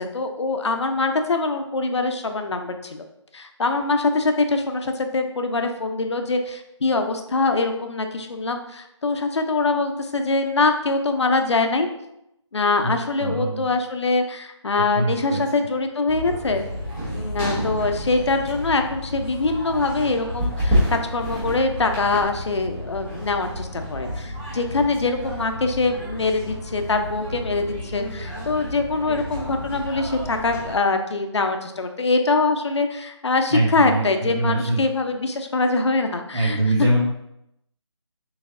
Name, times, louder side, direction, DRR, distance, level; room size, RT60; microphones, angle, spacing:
voice 1, 0.0-3.0 3.3-11.9 12.5-16.6 17.1-36.6, left 3 dB, 65° left, 5 dB, 0.7 m, -23 dB
voice 2, 13.2-13.7 14.8-15.4 33.5-34.8 36.3-37.0, right 1 dB, 70° right, -4 dB, 1.1 m, -23 dB
sound 1, 16.1-30.8, equal, 10° right, 0.6 m, -30 dB
6.0 x 3.3 x 2.5 m, 0.81 s
figure-of-eight pair, 165°, 16 cm